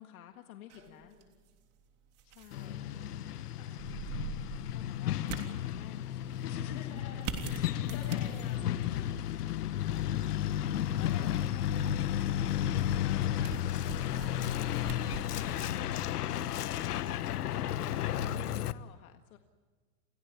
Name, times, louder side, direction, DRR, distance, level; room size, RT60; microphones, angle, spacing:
voice 1, 0.0-1.2 2.2-2.8 4.6-7.0 7.5-8.6 9.2-10.6 17.4-19.4, left 12 dB, 65° left, 5 dB, 1.9 m, -51 dB
sound 1, 0.7-18.8, right 6 dB, 35° right, 3.3 m, -47 dB
voice 2, 0.8-1.3 2.5-3.8 6.6-9.5 10.2-10.6 11.0-14.4, left 5 dB, 35° left, 4 dB, 7.6 m, -53 dB
Truck, 2.5-18.7, left 11 dB, 90° left, 1.2 m, -33 dB
29.0 x 17.5 x 8.5 m, 1.5 s
supercardioid pair, 155°, 45 cm